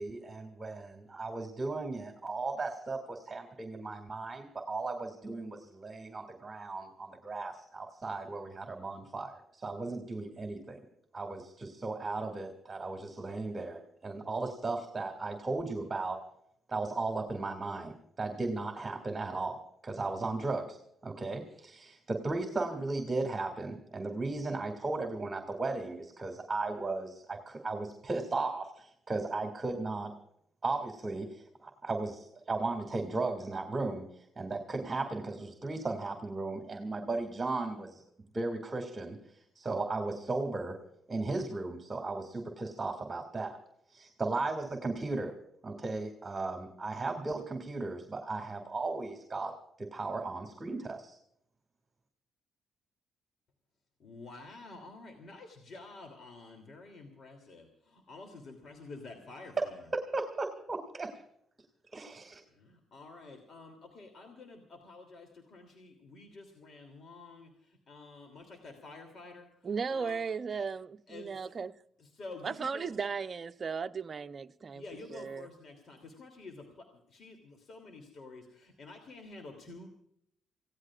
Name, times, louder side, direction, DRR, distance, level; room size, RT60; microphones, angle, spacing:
voice 1, 0.0-10.8 11.1-16.2 16.7-20.8 21.0-30.1 30.6-34.0 34.4-38.0 38.3-39.2 39.6-40.8 41.1-43.6 43.9-45.3 45.6-51.2 59.6-61.2 61.9-62.4, right 3 dB, 25° right, 2.4 m, -36 dB
voice 2, 54.0-59.8 62.5-69.5 69.9-70.2 70.5-70.6 71.1-71.5 72.0-72.9 74.7-79.9, left 3 dB, 55° left, 2.9 m, -49 dB
voice 3, 69.6-70.9 71.1-71.8 72.4-74.8 75.1-75.5, right 5 dB, 40° right, 0.7 m, -36 dB
29.0 x 16.5 x 2.5 m
cardioid pair, 90°, 0 cm